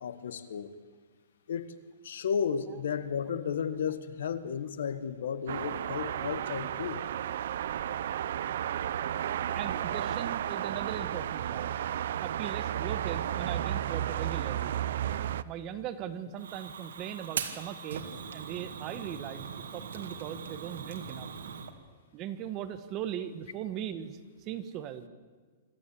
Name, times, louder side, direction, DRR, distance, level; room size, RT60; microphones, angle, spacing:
voice 1, 0.0-0.7 1.5-1.7 2.0-7.0, left 7 dB, 75° left, 14 dB, 1.6 m, -33 dB
sound 1, 5.5-15.4, right 10 dB, 60° right, 0.6 m, -33 dB
voice 2, 9.5-11.7 12.2-14.8 15.4-18.0 18.3-21.3 22.1-25.1, right 10 dB, 25° right, 11 dB, 1.3 m, -39 dB
Fire, 16.4-21.7, right 6 dB, 90° right, 2.4 m, -40 dB
26.0 x 14.0 x 8.6 m, 1.5 s
hypercardioid pair, 165°, 0 cm